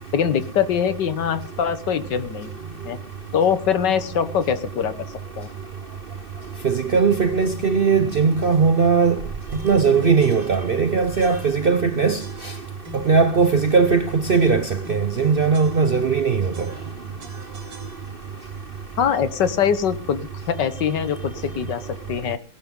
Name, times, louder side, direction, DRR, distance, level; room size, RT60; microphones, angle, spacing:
voice 1, 0.1-2.5 2.8-3.0 3.3-4.9 5.4-5.5 19.0-22.4, left 7 dB, 70° left, 1.8 m, -23 dB
voice 2, 6.6-9.2 9.6-12.2 13.1-16.5, right 5 dB, 65° right, 0.5 m, -19 dB
sound 1, 7.5-7.9 8.5-8.9 9.5-10.9 11.2-11.8 12.2-13.3 13.8-16.2 16.5-18.4, left 4 dB, 80° right, 3.0 m, -42 dB
18.5 x 12.0 x 3.8 m
omnidirectional pair, 2.0 m